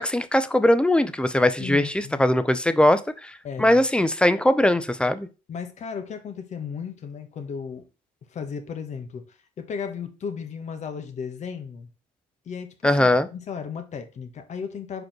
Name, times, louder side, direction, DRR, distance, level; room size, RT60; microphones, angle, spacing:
voice 1, 0.0-5.3 12.8-13.3, left 1 dB, 5° left, 0.6 m, -21 dB
voice 2, 1.6-2.2 3.4-3.8 5.5-7.9 8.3-11.9 12.4-15.0, left 6 dB, 45° left, 1.4 m, -35 dB
4.9 x 4.7 x 6.0 m
cardioid pair, 115°, 16 cm